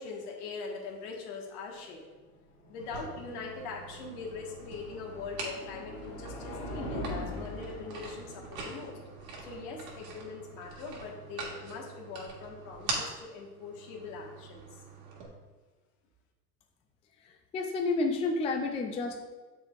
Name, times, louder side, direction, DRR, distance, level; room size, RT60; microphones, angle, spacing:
voice 1, 0.0-2.1 2.7-9.0 9.4-14.8, left 4 dB, 65° left, 0 dB, 1.6 m, -42 dB
sound 1, 2.3-11.3, left 1 dB, 45° left, 1.9 m, -43 dB
sound 2, 2.8-15.3, right 4 dB, 75° right, 2.0 m, -44 dB
voice 2, 17.5-19.2, left 3 dB, 15° left, 3 dB, 0.4 m, -30 dB
7.1 x 6.0 x 2.5 m, 1.3 s
hypercardioid pair, 100°, 48 cm